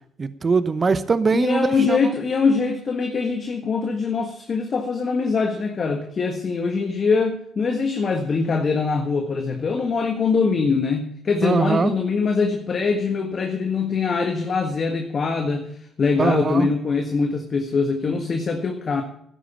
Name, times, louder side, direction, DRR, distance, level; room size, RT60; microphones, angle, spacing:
voice 1, 0.2-2.0 11.4-11.9 16.2-16.7, right 4 dB, 35° right, 13 dB, 0.9 m, -21 dB
voice 2, 1.3-19.0, left 4 dB, 45° left, 4 dB, 1.6 m, -23 dB
13.0 x 10.0 x 7.0 m, 0.69 s
hypercardioid pair, 55°, 0 cm